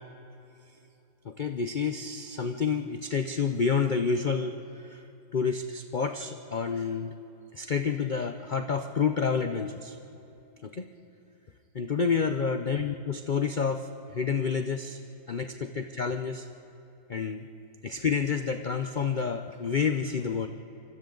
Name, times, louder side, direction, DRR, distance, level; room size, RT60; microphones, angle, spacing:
voice 1, 1.2-5.0 5.3-7.1 7.5-10.0 10.6-10.9 11.7-15.0 15.3-16.5 17.1-17.5 17.8-20.5, left 5 dB, 50° left, 6 dB, 0.5 m, -29 dB
28.0 x 25.0 x 3.9 m, 3.0 s
omnidirectional pair, 1.8 m